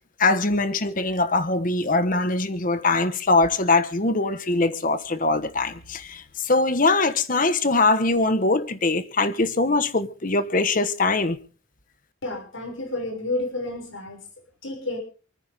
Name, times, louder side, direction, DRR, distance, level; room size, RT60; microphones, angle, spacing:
voice 1, 0.2-11.4, left 3 dB, 45° left, 1.3 m, -22 dB
voice 2, 12.2-14.2 14.6-15.0, left 2 dB, 90° left, 6.3 m, -30 dB
28.5 x 9.9 x 3.6 m
head